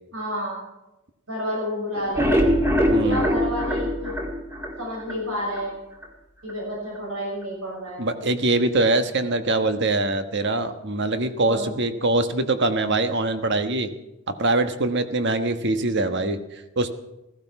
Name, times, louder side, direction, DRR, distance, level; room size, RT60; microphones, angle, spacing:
voice 1, 0.1-0.6 1.3-2.5 2.9-4.2 4.8-5.8 6.4-8.1 11.5-11.7, equal, 70° right, -3 dB, 6.6 m, -30 dB
sound 1, 2.0-5.2 5.6-5.7 6.0-6.1 6.5-6.6, equal, 10° right, 2.1 m, -22 dB
voice 2, 2.9-3.2 8.0-13.9 14.4-16.9, right 2 dB, 55° right, 9 dB, 1.3 m, -23 dB
15.0 x 15.0 x 5.9 m, 0.94 s
head